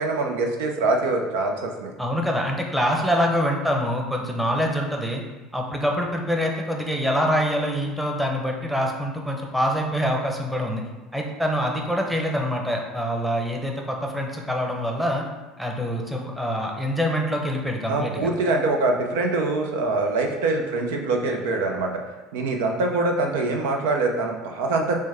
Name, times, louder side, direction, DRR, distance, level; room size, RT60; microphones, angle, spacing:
voice 1, 0.0-1.9 17.9-22.0 22.3-25.0, right 3 dB, 85° right, 3 dB, 0.5 m, -24 dB
voice 2, 2.0-5.2 5.5-10.8 11.1-15.2 15.6-18.3, equal, 5° right, 1 dB, 0.8 m, -25 dB
6.1 x 2.2 x 3.4 m, 1.2 s
supercardioid pair, 90°, 0 cm